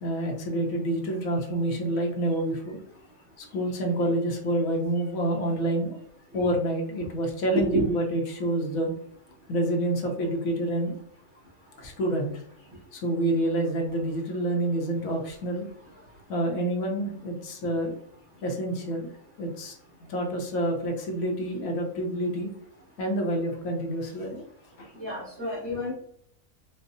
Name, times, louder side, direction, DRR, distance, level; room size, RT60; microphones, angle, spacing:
voice 1, 0.0-2.8 3.4-6.0 6.3-8.9 9.5-10.9 11.8-12.4 12.9-15.7 16.3-17.9 18.4-19.1 19.4-19.7 20.0-22.5 23.0-24.4 24.8-24.9, right 1 dB, 80° left, 1 dB, 1.2 m, -28 dB
voice 2, 7.5-7.9 24.9-25.9, right 1 dB, 55° right, -8 dB, 1.3 m, -28 dB
4.4 x 2.0 x 2.6 m, 0.69 s
omnidirectional pair, 1.4 m